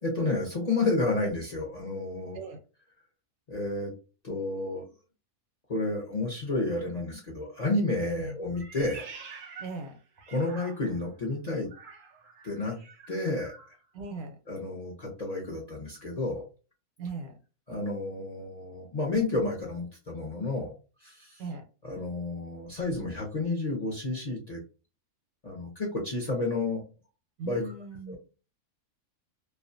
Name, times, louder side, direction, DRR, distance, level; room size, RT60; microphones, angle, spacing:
voice 1, 0.0-2.4 3.5-3.9 4.2-4.8 5.7-9.1 10.3-11.7 12.4-12.8 13.1-13.5 14.5-16.5 17.7-20.7 21.0-21.4 21.8-24.6 25.4-26.8 27.4-27.6 28.1-28.2, left 2 dB, 45° left, -2 dB, 0.5 m, -31 dB
Meow, 8.5-11.1 11.7-13.7, right 5 dB, 65° right, 0.7 m, -47 dB
voice 2, 9.6-10.0 13.9-14.4 17.0-17.4 21.4-21.7 27.4-28.2, right 3 dB, 85° right, 5 dB, 1.1 m, -38 dB
2.5 x 2.2 x 2.5 m, 0.33 s
omnidirectional pair, 1.5 m